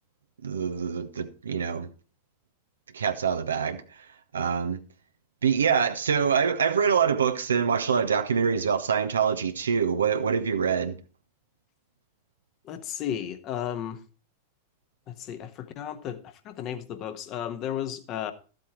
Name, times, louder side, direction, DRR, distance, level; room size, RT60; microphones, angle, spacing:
voice 1, 0.4-1.9 2.9-4.1 4.3-4.8 5.4-11.0, right 6 dB, 70° right, 0.7 m, -25 dB
voice 2, 12.6-14.0 15.1-18.3, left 10 dB, 35° left, 1.2 m, -34 dB
13.0 x 7.8 x 4.5 m
figure-of-eight pair, 90°, 0 cm